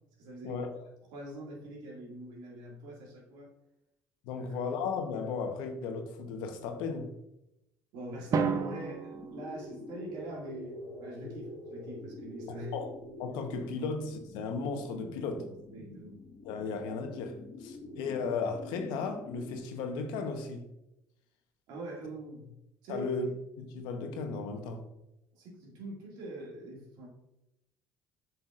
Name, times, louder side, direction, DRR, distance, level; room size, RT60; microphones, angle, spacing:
voice 1, 0.2-0.6 1.1-3.5 4.4-4.6 7.9-12.8 15.3-16.2 17.8-18.0 21.7-22.5 22.8-23.3 25.3-27.1, right 1 dB, 75° right, 2.1 m, -43 dB
voice 2, 4.2-7.1 12.7-12.9 13.2-15.5 16.4-20.7 22.9-23.3 23.6-24.8, left 4 dB, 80° left, 1.0 m, -35 dB
Drum, 8.3-10.3, right 5 dB, 50° right, 0.7 m, -33 dB
sound 1, 9.1-19.6, left 1 dB, 35° left, 1.2 m, -46 dB
7.6 x 5.7 x 2.5 m
supercardioid pair, 75°, 8 cm